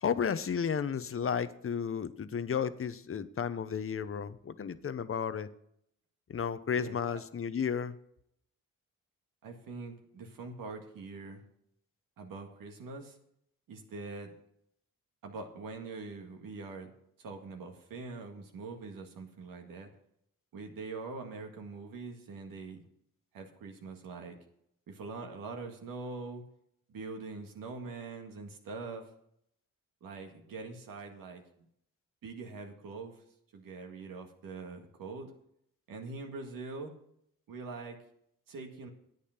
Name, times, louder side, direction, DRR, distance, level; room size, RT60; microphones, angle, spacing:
voice 1, 0.0-5.5 6.3-8.0, left 7 dB, 40° left, 14 dB, 0.9 m, -33 dB
voice 2, 9.4-11.4 12.2-13.2 13.7-14.3 15.2-16.9 17.2-19.9 20.5-22.8 23.3-24.4 24.9-26.5 26.9-29.1 30.0-31.4 32.2-33.2 33.5-35.3 35.9-36.9 37.5-38.0 38.5-38.9, right 3 dB, 80° right, 3 dB, 2.0 m, -43 dB
10.5 x 8.4 x 5.9 m, 0.72 s
cardioid pair, 65°, 33 cm